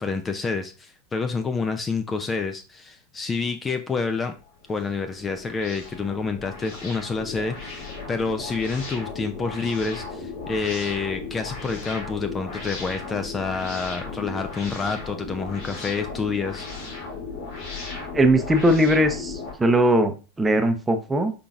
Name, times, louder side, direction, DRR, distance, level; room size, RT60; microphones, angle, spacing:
voice 1, 0.0-4.3 4.7-17.0, left 4 dB, 20° left, 7 dB, 0.5 m, -28 dB
sound 1, 4.4-19.5, left 4 dB, 60° left, 2.3 m, -36 dB
voice 2, 18.1-21.3, right 1 dB, 15° right, 7 dB, 0.7 m, -20 dB
5.7 x 3.8 x 2.4 m, 0.32 s
hypercardioid pair, 90°, 0 cm